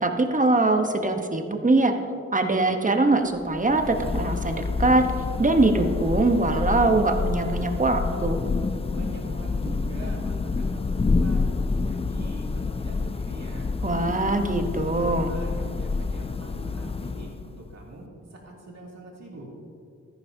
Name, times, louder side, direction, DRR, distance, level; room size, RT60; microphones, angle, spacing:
voice 1, 0.0-1.9 2.3-5.1 5.4-8.4 13.8-15.3, right 2 dB, 25° right, 5 dB, 1.1 m, -22 dB
Thunder / Rain, 3.4-17.7, left 3 dB, 20° left, 0.4 m, -28 dB
voice 2, 8.9-11.5 11.8-13.7 14.4-18.0 18.3-19.5, right 1 dB, 60° right, -3 dB, 2.9 m, -43 dB
13.5 x 11.0 x 2.8 m, 2.4 s
cardioid pair, 60°, 30 cm